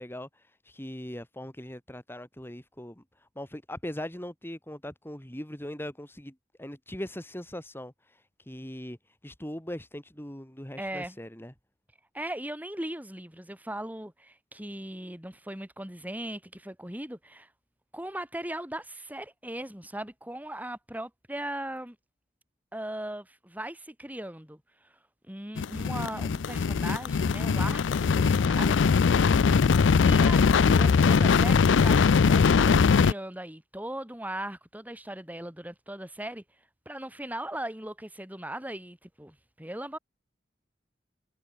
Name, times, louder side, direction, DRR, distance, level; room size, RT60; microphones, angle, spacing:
voice 1, 0.0-9.0 9.2-11.5, left 1 dB, 10° left, 2.5 m, -40 dB
voice 2, 10.8-11.2 12.1-17.5 17.9-22.0 22.7-24.9 25.3-29.4 30.0-36.4 36.9-40.0, right 1 dB, 10° right, 4.2 m, -38 dB
sound 1, 25.6-33.1, left 5 dB, 80° left, 0.4 m, -21 dB
head